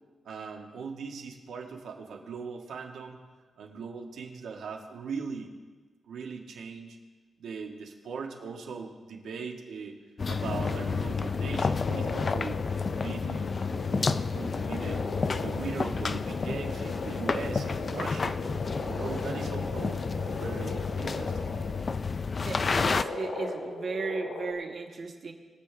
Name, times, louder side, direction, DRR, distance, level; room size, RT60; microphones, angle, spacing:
voice 1, 0.3-3.2 3.6-5.5 6.1-7.0 7.4-10.0 10.3-12.6 12.9-15.0 15.4-18.4 18.9-21.5, right 5 dB, 85° right, 1 dB, 1.7 m, -40 dB
sound 1, 10.2-23.0, left 4 dB, 30° left, 0.3 m, -30 dB
sound 2, 10.4-21.9 22.4-24.5, left 3 dB, 80° left, 2.4 m, -39 dB
voice 2, 19.0-19.4 22.4-25.3, right 4 dB, 40° right, 2 dB, 1.5 m, -36 dB
23.5 x 8.4 x 3.4 m, 1.4 s
wide cardioid pair, 175°, 0 cm